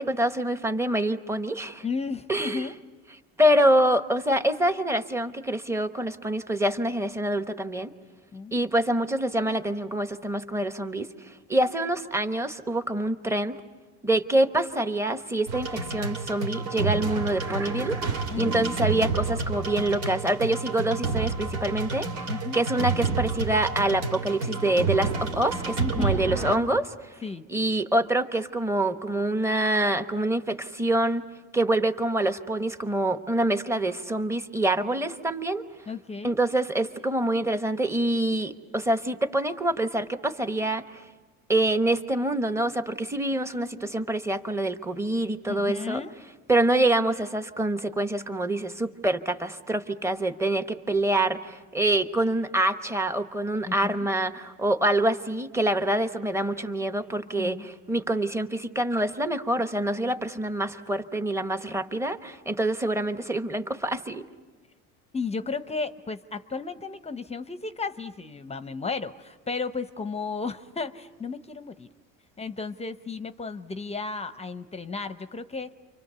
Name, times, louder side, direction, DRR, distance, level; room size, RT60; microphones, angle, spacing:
voice 1, 0.0-1.8 2.3-2.7 3.4-7.9 8.5-11.1 11.5-13.6 14.0-18.0 18.4-26.9 27.5-31.2 31.5-35.6 36.2-40.8 41.5-46.0 46.5-64.2, right 1 dB, 10° right, 9 dB, 1.1 m, -26 dB
voice 2, 1.8-2.8 8.3-8.5 18.3-18.7 22.3-22.6 25.8-26.2 27.2-27.5 35.9-36.4 45.5-46.2 53.7-53.9 57.4-57.7 65.1-71.9 72.4-75.7, left 4 dB, 20° left, 11 dB, 0.8 m, -34 dB
sound 1, 15.5-26.6, right 4 dB, 85° right, 2.7 m, -29 dB
sound 2, 17.0-18.6, right 2 dB, 60° right, 3.1 m, -41 dB
29.0 x 25.0 x 6.9 m, 1.3 s
supercardioid pair, 110°, 34 cm